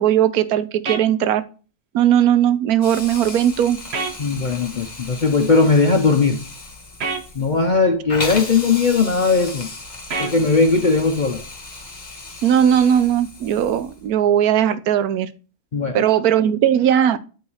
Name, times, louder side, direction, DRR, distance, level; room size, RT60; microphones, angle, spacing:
voice 1, 0.0-1.4 1.9-3.8 12.4-15.3 15.9-17.2, right 10 dB, 80° right, 1.1 m, -18 dB
sound 1, 0.9-1.0 3.9-4.2 7.0-7.2 10.1-10.4, right 4 dB, 50° right, 1.1 m, -25 dB
Hiss, 2.8-14.1, left 3 dB, 30° left, 1.6 m, -35 dB
voice 2, 4.2-6.4 7.3-9.7 10.2-11.4 15.7-16.0, left 4 dB, 50° left, 0.5 m, -18 dB
9.6 x 3.9 x 3.2 m
omnidirectional pair, 1.6 m